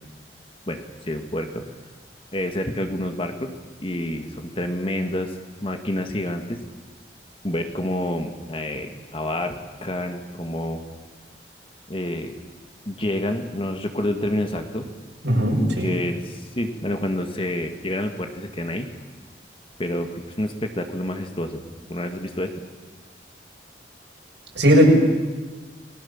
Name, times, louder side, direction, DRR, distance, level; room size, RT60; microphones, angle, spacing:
voice 1, 0.7-1.6 2.3-3.5 3.8-6.6 7.4-10.8 11.9-12.3 12.9-14.9 15.8-18.9 19.8-21.6 21.9-22.6, left 1 dB, 30° left, 6 dB, 1.9 m, -28 dB
voice 2, 15.2-16.0 24.5-24.9, equal, 80° right, 0 dB, 7.1 m, -17 dB
29.5 x 21.5 x 7.2 m, 1.3 s
head